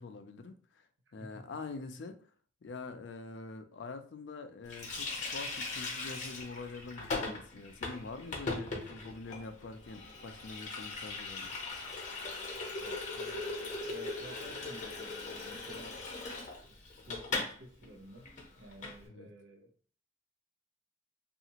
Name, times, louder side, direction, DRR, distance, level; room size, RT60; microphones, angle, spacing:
voice 1, 0.0-0.9 1.1-2.2 2.6-11.5 19.1-19.3, left 3 dB, 70° left, 0.4 m, -45 dB
Water tap faucet, 4.7-17.6 17.8-18.0 18.2-19.0, left 3 dB, 40° left, 0.7 m, -39 dB
voice 2, 12.8-16.3 17.0-18.3 18.6-19.7, equal, 90° right, 0.7 m, -52 dB
2.7 x 2.4 x 2.8 m
head